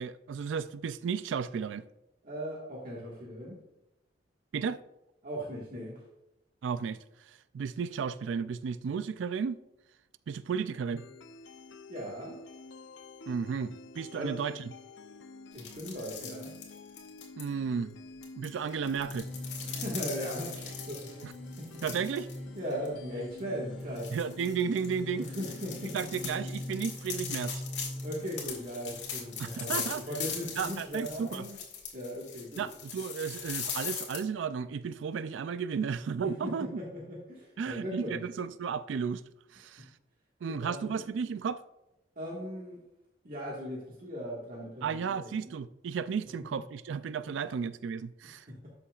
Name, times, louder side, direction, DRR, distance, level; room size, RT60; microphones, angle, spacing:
voice 1, 0.0-1.8 4.5-4.8 6.6-9.6 10.3-11.0 13.3-14.6 17.4-18.0 18.4-19.3 21.2-21.3 21.8-22.3 24.1-25.3 25.9-27.6 29.4-30.1 30.6-31.5 32.6-36.7 37.6-39.2 39.5-39.9 40.4-41.6 44.8-48.5, right 6 dB, 90° right, 0.4 m, -33 dB
voice 2, 2.2-3.5 5.2-6.0 11.9-12.4 14.1-14.4 15.5-16.5 19.6-21.3 21.6-22.0 22.6-24.1 25.2-26.0 28.0-31.6 31.9-32.6 36.2-38.2 40.4-41.0 42.1-42.8 43.2-45.5 48.3-48.7, equal, 50° right, 1.6 m, -39 dB
sound 1, 11.0-27.0, left 3 dB, 85° left, 0.6 m, -50 dB
sound 2, 15.5-17.4 18.2-22.4 22.7-22.9 23.4-23.5 24.0-34.2, left 7 dB, 65° left, 2.3 m, -40 dB
sound 3, 18.9-31.3, left 1 dB, ahead, 1.7 m, -44 dB
12.5 x 7.0 x 2.4 m
head